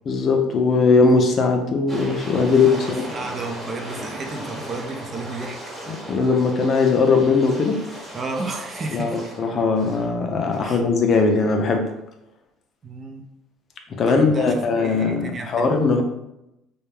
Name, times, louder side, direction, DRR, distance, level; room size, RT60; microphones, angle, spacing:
voice 1, 0.1-2.9 5.9-7.8 8.9-11.9 13.9-16.0, left 4 dB, 45° left, 4 dB, 0.4 m, -19 dB
sound 1, 1.9-10.1 10.5-10.6, equal, 5° right, 1.0 m, -36 dB
voice 2, 2.7-5.6 8.1-9.3 10.6-10.8 12.8-13.2 14.1-15.7, right 3 dB, 35° right, 4 dB, 0.4 m, -32 dB
2.2 x 2.1 x 3.1 m, 0.87 s
cardioid pair, 110°, 0 cm